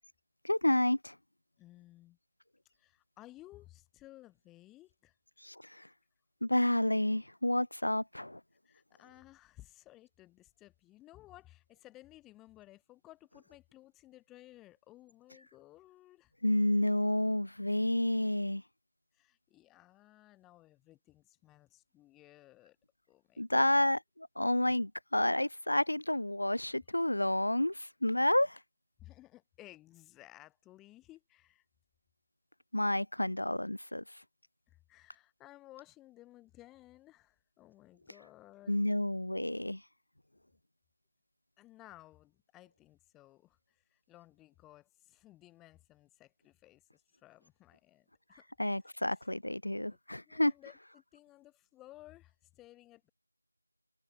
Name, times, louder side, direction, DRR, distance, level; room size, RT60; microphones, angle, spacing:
voice 1, 0.4-1.1 5.4-5.9 6.4-8.4 16.4-18.6 23.4-24.0 24.4-28.6 32.7-34.0 38.7-39.8 48.6-50.5, left 1 dB, 70° left, 7.4 m, -30 dB
voice 2, 1.6-2.2 2.8-5.2 8.6-16.6 19.1-22.8 23.1-23.8 29.0-31.7 34.7-38.8 41.6-48.5 48.8-49.2 50.3-53.1, left 16 dB, 5° left, 5.3 m, -57 dB
figure-of-eight pair, 175°, 0 cm